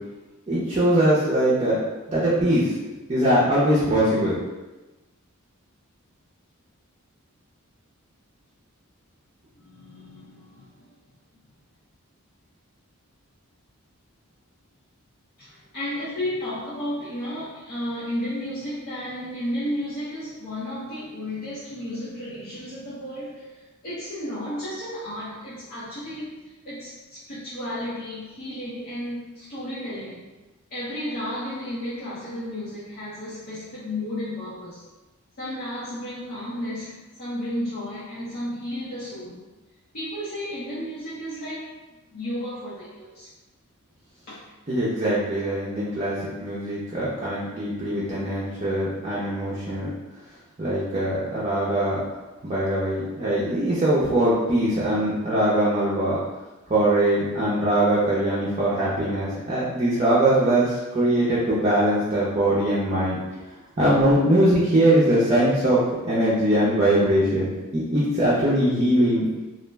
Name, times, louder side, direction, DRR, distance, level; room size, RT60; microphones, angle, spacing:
voice 1, 0.5-1.8 2.1-2.7 3.1-4.4 44.7-49.9 50.6-52.0 52.4-56.2 56.7-63.2 63.8-69.2, right 1 dB, 30° right, -9 dB, 0.5 m, -22 dB
voice 2, 9.6-10.9 15.4-30.3 30.7-34.8 35.4-39.4 39.9-41.8 42.1-43.3 44.3-44.4 68.8-69.2, left 1 dB, 45° left, -11 dB, 0.6 m, -33 dB
2.4 x 2.1 x 3.2 m, 1.1 s
head